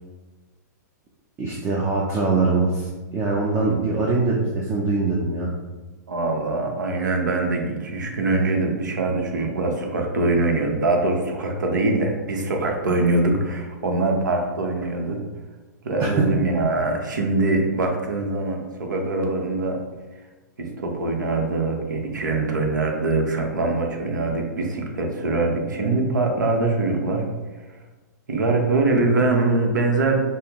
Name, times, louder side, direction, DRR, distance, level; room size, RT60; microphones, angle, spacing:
voice 1, 1.4-5.5 16.2-16.3, right 3 dB, 25° right, -2 dB, 0.6 m, -22 dB
voice 2, 6.1-15.2 15.8-19.8 20.6-27.3 28.3-30.3, right 2 dB, 80° right, 2 dB, 0.8 m, -23 dB
5.5 x 2.0 x 3.0 m, 1.2 s
hypercardioid pair, 115°, 10 cm